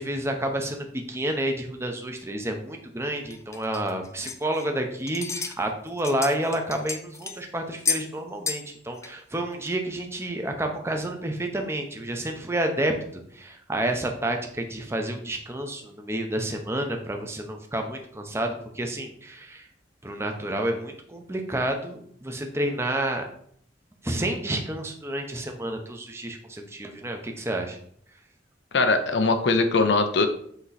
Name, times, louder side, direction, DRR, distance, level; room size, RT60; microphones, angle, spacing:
voice 1, 0.0-12.9 13.3-19.7 20.0-23.2 24.0-27.8, right 1 dB, 15° right, 3 dB, 0.8 m, -30 dB
sound 1, 3.3-4.8 5.1-5.6 5.9-7.4 7.8-8.1 8.5-8.7 9.0-9.1 9.7-9.8, left 5 dB, 15° left, 0.4 m, -31 dB
voice 2, 28.7-30.3, left 3 dB, 75° left, 8 dB, 0.7 m, -21 dB
8.0 x 3.0 x 4.1 m, 0.64 s
head